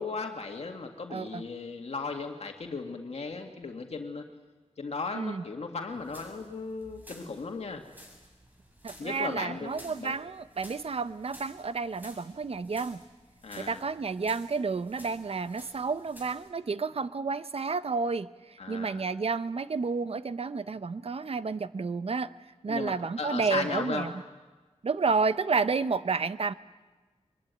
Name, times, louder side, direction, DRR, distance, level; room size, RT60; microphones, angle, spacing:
voice 1, 0.0-4.3 4.8-7.8 9.0-10.1 13.4-13.8 18.6-19.0 22.7-24.1, left 4 dB, 65° left, 3 dB, 2.1 m, -36 dB
voice 2, 1.1-1.4 5.1-5.4 8.8-13.0 13.6-18.3 18.7-22.3 22.6-24.1 24.8-26.5, right 4 dB, 60° right, 13 dB, 0.9 m, -30 dB
sound 1, 5.9-16.5, equal, 15° right, 6.2 m, -53 dB
24.0 x 22.0 x 9.3 m, 1.3 s
wide cardioid pair, 95°, 11 cm